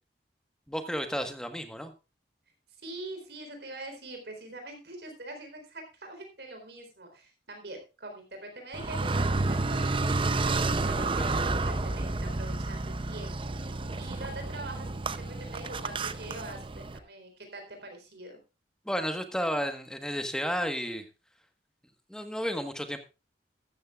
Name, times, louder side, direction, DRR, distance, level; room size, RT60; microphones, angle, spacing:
voice 1, 0.7-1.9 11.2-11.3 18.8-21.0 22.1-23.0, equal, 5° left, 7 dB, 1.4 m, -32 dB
voice 2, 2.8-10.1 10.5-18.4, right 2 dB, 65° right, 4 dB, 4.1 m, -44 dB
Car, 8.7-17.0, right 3 dB, 30° right, 0.7 m, -30 dB
14.5 x 13.0 x 2.5 m, 0.29 s
head